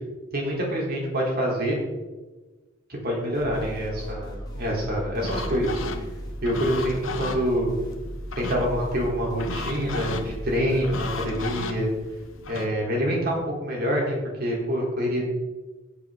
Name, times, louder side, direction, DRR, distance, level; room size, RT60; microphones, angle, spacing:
voice 1, 0.3-1.8 3.0-5.8 6.4-7.7 8.3-11.9 12.5-15.2, equal, 50° right, -2 dB, 4.0 m, -26 dB
sound 1, 3.3-11.5, equal, 20° left, 2.2 m, -37 dB
sound 2, 5.2-12.7, left 3 dB, 85° left, 1.2 m, -36 dB
16.5 x 8.1 x 4.0 m, 1.2 s
head